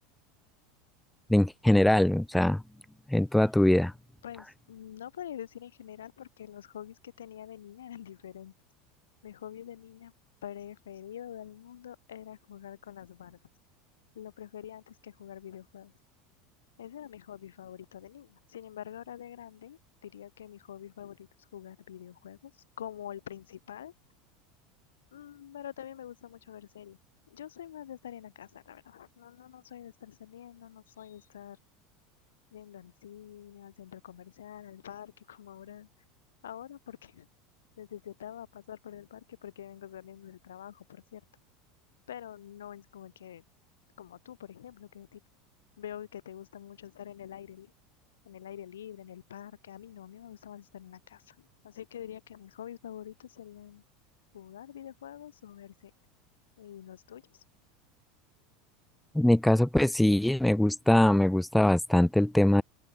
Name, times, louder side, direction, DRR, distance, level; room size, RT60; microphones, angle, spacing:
voice 1, 1.3-2.6 3.1-3.9 59.1-62.6, left 1 dB, 5° left, 1.4 m, -22 dB
voice 2, 4.2-8.5 9.2-10.1 10.4-13.4 14.1-15.9 16.8-23.9 25.1-27.0 27.3-31.6 32.5-35.9 36.4-37.3 37.8-41.2 42.1-43.4 44.0-45.2 45.8-47.7 48.2-53.8 54.3-55.9 56.6-57.4, left 10 dB, 85° left, 4.2 m, -46 dB
open air
hypercardioid pair, 85°, 0 cm